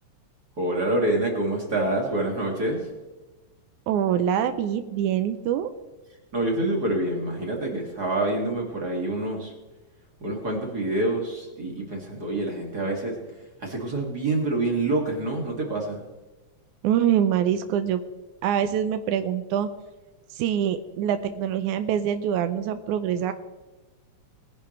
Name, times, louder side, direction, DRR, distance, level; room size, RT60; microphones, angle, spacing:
voice 1, 0.6-2.9 6.3-9.5 10.2-13.2 13.6-16.0, right 2 dB, 35° right, -1 dB, 2.7 m, -26 dB
voice 2, 3.9-5.7 16.8-18.0 18.4-19.7 20.3-23.3, right 9 dB, 90° right, 9 dB, 2.2 m, -24 dB
21.5 x 10.5 x 3.3 m, 1.2 s
omnidirectional pair, 3.4 m